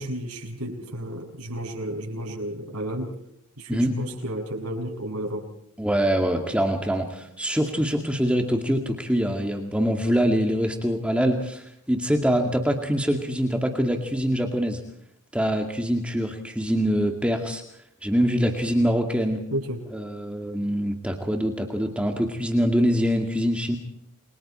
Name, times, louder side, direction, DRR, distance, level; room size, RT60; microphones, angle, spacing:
voice 1, 0.0-3.1 3.6-5.5 19.5-19.8, right 1 dB, 90° right, 1 dB, 6.9 m, -32 dB
voice 2, 5.8-14.8 15.3-17.6 18.0-19.4 19.9-23.8, equal, 5° right, 3 dB, 2.2 m, -24 dB
29.0 x 24.0 x 4.4 m, 0.72 s
head